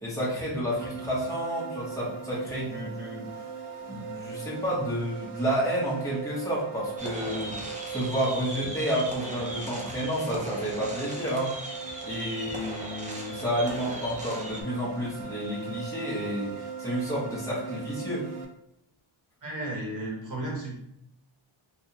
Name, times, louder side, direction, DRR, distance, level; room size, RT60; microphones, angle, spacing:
voice 1, 0.0-3.2 3.9-11.5 12.0-18.3, equal, 5° left, -6 dB, 1.0 m, -30 dB
sound 1, 0.7-18.5, right 6 dB, 80° right, 0.6 m, -39 dB
sound 2, 7.0-14.6, right 2 dB, 15° right, 0.4 m, -38 dB
voice 2, 19.4-20.7, right 1 dB, 40° right, -4 dB, 1.1 m, -33 dB
3.4 x 2.3 x 2.7 m, 0.77 s
wide cardioid pair, 165°, 50 cm